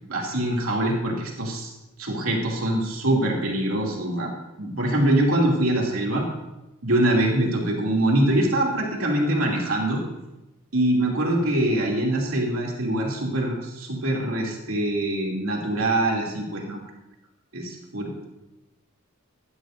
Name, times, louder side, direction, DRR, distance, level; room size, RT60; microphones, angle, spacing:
voice 1, 0.1-1.7 2.0-4.3 4.6-6.2 6.8-10.0 10.7-16.8 17.5-18.3, right 1 dB, 75° right, -2 dB, 2.8 m, -24 dB
18.0 x 13.5 x 2.7 m, 0.98 s
head